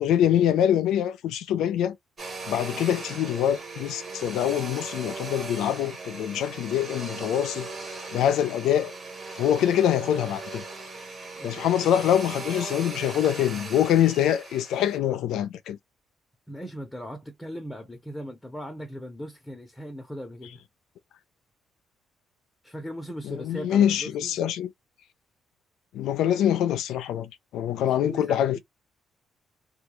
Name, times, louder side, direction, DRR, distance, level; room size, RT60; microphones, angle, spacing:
voice 1, 0.0-2.0 2.5-7.7 8.1-8.9 9.4-10.6 11.4-15.8 23.2-24.7 25.9-28.6, left 10 dB, 85° left, 0.4 m, -24 dB
Domestic sounds home sounds, 2.2-15.0, right 3 dB, 35° right, 1.3 m, -38 dB
voice 2, 16.5-20.6 22.6-24.3 28.0-28.6, equal, 10° left, 0.8 m, -38 dB
2.3 x 2.2 x 3.0 m
cardioid pair, 90°, 0 cm